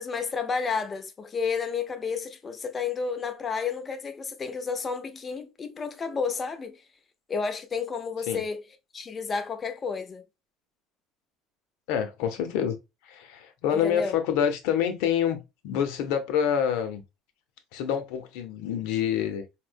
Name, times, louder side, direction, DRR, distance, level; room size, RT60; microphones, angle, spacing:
voice 1, 0.0-6.8 7.3-8.6 8.9-10.2 13.7-14.1, left 5 dB, 30° left, 0.6 m, -31 dB
voice 2, 11.9-12.8 13.0-17.0 17.7-19.4, left 8 dB, 75° left, 0.7 m, -27 dB
4.2 x 2.1 x 2.5 m
supercardioid pair, 105°, 0 cm